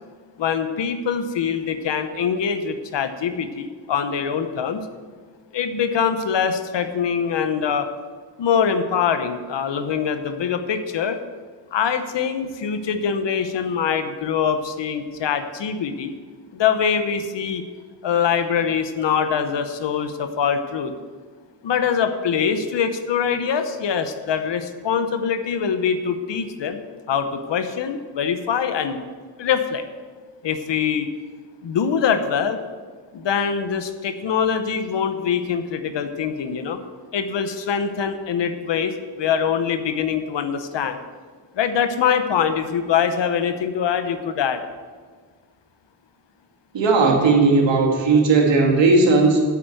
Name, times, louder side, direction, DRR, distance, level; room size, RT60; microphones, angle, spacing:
voice 1, 0.4-4.8 5.5-7.9 8.4-11.2 11.7-16.2 16.5-17.6 18.0-20.9 21.6-26.8 27.1-29.1 29.4-29.8 30.4-31.1 31.6-32.6 33.1-36.8 37.1-41.0 41.5-44.6, left 7 dB, 80° left, 9 dB, 1.0 m, -23 dB
voice 2, 46.7-49.4, right 3 dB, 90° right, 2 dB, 2.0 m, -16 dB
8.7 x 8.4 x 7.9 m, 1.5 s
cardioid pair, 90°, 43 cm